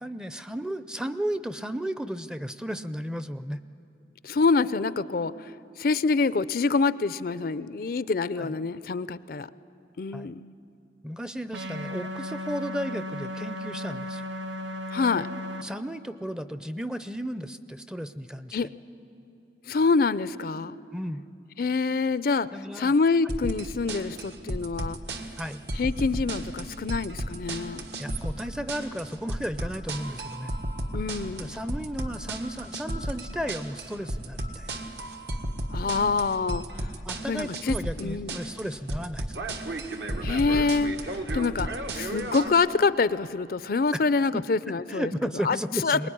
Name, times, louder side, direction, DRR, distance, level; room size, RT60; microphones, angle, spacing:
voice 1, 0.0-3.6 8.4-8.6 10.1-10.3 11.0-14.2 15.6-18.6 20.9-21.2 22.5-22.9 25.4-25.6 28.0-30.5 31.3-34.7 37.1-39.4 43.9-44.0 44.3-44.4 44.9-46.1, equal, 5° right, 12 dB, 0.5 m, -34 dB
voice 2, 4.2-5.5 5.8-9.5 10.0-10.5 14.9-15.3 18.5-18.7 19.7-20.8 21.6-22.5 22.8-25.0 25.7-27.8 30.9-31.6 35.7-36.7 37.3-38.5 40.2-45.1 45.4-45.6 45.8-46.1, left 4 dB, 55° left, 16 dB, 0.5 m, -26 dB
sound 1, 11.5-15.6, left 1 dB, 90° right, 1.2 m, -35 dB
sound 2, 23.3-42.5, right 1 dB, 70° right, 1.7 m, -34 dB
23.0 x 20.0 x 9.9 m, 2.9 s
head